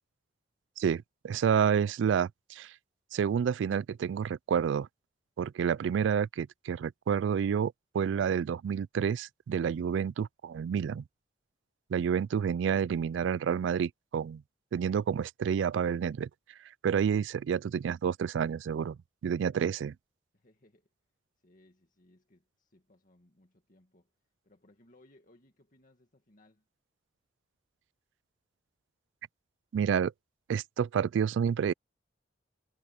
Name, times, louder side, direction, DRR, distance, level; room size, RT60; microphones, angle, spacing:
voice 1, 0.8-2.7 3.1-4.9 5.4-11.0 11.9-14.4 14.7-16.3 16.8-19.0 19.2-19.9 29.7-30.1 30.5-31.7, right 7 dB, 70° right, 0.3 m, -29 dB
voice 2, 19.5-19.9 20.3-20.9 21.4-24.1 24.4-26.7, left 1 dB, 45° left, 2.1 m, -64 dB
head